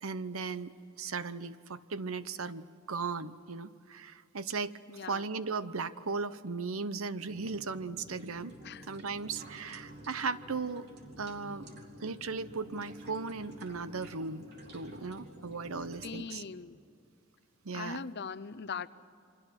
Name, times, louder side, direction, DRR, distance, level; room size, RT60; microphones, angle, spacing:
voice 1, 0.0-4.8 5.1-8.5 8.9-10.9 11.2-11.7 12.0-14.4 14.7-16.4 17.6-18.0, right 4 dB, 80° right, 14 dB, 0.9 m, -37 dB
voice 2, 4.9-5.2 8.6-8.9 16.0-16.8 17.7-18.9, left 5 dB, 55° left, 16 dB, 0.7 m, -40 dB
sound 1, 7.2-16.1, equal, 55° right, 3.4 m, -50 dB
28.0 x 24.5 x 6.3 m, 2.6 s
head